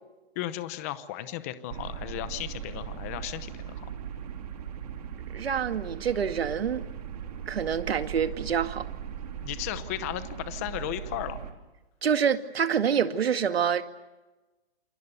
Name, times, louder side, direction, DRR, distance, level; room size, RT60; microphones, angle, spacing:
voice 1, 0.4-3.9 9.4-11.4, left 13 dB, 15° left, 0.8 m, -35 dB
sound 1, 1.7-11.5, right 9 dB, 40° right, 3.0 m, -39 dB
voice 2, 5.3-6.8 7.5-8.9 12.0-13.8, right 7 dB, 80° right, 2.2 m, -26 dB
28.5 x 28.0 x 6.8 m
hypercardioid pair, 175°, 30 cm